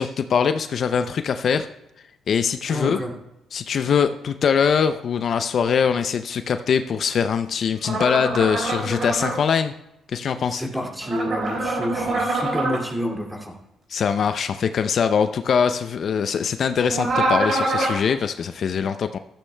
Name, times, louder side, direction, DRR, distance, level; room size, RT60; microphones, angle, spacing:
voice 1, 0.0-1.7 2.3-3.0 3.5-9.7 10.1-10.6 13.9-19.2, left 7 dB, 55° left, 9 dB, 0.5 m, -22 dB
voice 2, 2.7-3.1 10.5-13.6, equal, 5° right, 0 dB, 2.4 m, -28 dB
sound 1, 7.8-9.3 11.0-12.8 16.9-18.0, right 2 dB, 55° right, 4.8 m, -24 dB
15.0 x 13.0 x 2.2 m, 0.91 s
cardioid pair, 90°, 0 cm